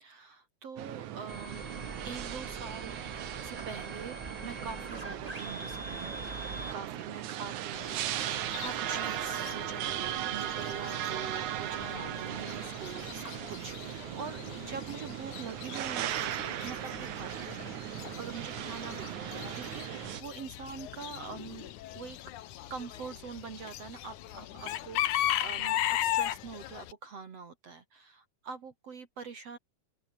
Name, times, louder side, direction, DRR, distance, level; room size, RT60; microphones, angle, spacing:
voice 1, 0.0-1.6 2.0-3.0 3.4-6.4 6.7-17.7 18.2-22.2 22.7-29.6, right 5 dB, 55° right, 3.4 m, -44 dB
sound 1, 0.8-20.2, right 12 dB, 75° right, 2.6 m, -37 dB
sound 2, 1.3-6.7, right 1 dB, 10° right, 5.2 m, -43 dB
Chicken rooster / Bird, 7.7-26.9, left 13 dB, 85° left, 2.6 m, -38 dB
open air
omnidirectional pair, 3.4 m